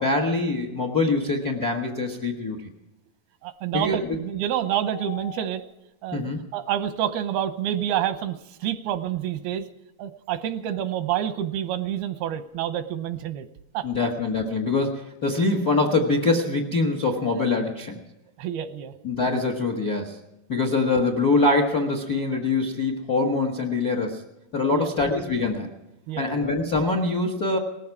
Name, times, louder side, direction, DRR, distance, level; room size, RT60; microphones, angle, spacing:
voice 1, 0.0-2.7 3.7-4.2 6.1-6.4 13.8-18.0 19.0-20.2 20.5-24.2 24.5-25.7 26.2-27.6, left 3 dB, 50° left, 4 dB, 1.1 m, -24 dB
voice 2, 3.4-5.6 6.0-9.7 10.0-13.5 13.7-13.9 18.4-18.9 20.6-20.7 24.7-25.1 26.1-26.5, right 11 dB, 85° right, 10 dB, 2.8 m, -28 dB
sound 1, 4.9-6.0 8.4-8.5 10.7-11.1 11.4-11.5 11.8-12.7, left 8 dB, 75° left, 4.5 m, -44 dB
19.5 x 15.0 x 4.7 m, 0.92 s
omnidirectional pair, 4.4 m